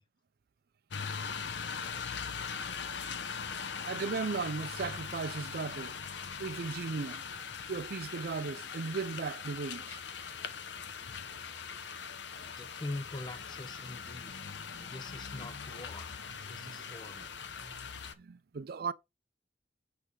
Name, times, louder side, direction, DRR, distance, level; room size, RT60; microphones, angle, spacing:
sound 1, 0.9-18.1, left 6 dB, 80° left, 0.8 m, -41 dB
voice 1, 3.9-5.9 6.4-7.2 7.7-10.0 14.7-14.8 16.5-16.9 17.6-17.8 18.2-18.9, right 5 dB, 60° right, 0.4 m, -37 dB
voice 2, 12.6-14.4 14.9-16.1 16.5-17.4, left 2 dB, 25° left, 0.7 m, -43 dB
8.1 x 3.4 x 5.3 m
head